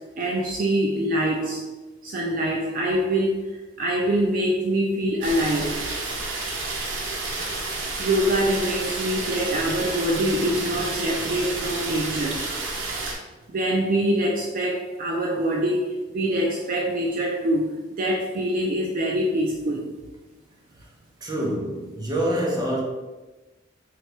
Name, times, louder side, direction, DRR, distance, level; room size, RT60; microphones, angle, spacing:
voice 1, 0.0-1.8 2.0-5.8 8.0-12.4 13.5-19.9, right 1 dB, 45° right, 0.4 m, -24 dB
sound 1, 5.2-13.1, right 3 dB, 80° right, 0.7 m, -30 dB
voice 2, 21.2-22.8, right 1 dB, 20° right, 0.8 m, -26 dB
3.2 x 3.2 x 3.1 m
head